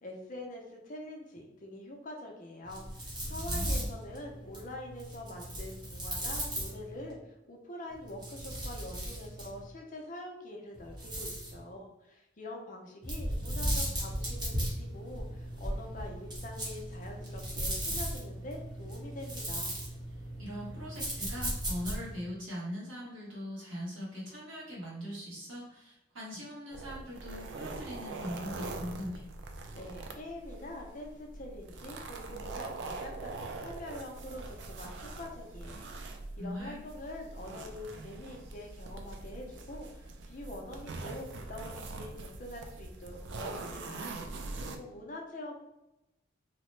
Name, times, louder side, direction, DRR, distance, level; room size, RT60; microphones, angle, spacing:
voice 1, 0.0-19.7 29.8-45.5, left 1 dB, 40° left, 1 dB, 0.5 m, -45 dB
sound 1, 2.6-7.1 7.9-9.7 10.7-11.6 13.0-22.2, right 1 dB, 20° right, 0.7 m, -37 dB
voice 2, 3.4-3.9 20.4-29.2 36.4-36.8, equal, 80° right, -5 dB, 1.1 m, -41 dB
sound 2, 26.7-44.8, right 3 dB, 60° right, 0.3 m, -43 dB
2.8 x 2.1 x 3.1 m, 0.93 s
head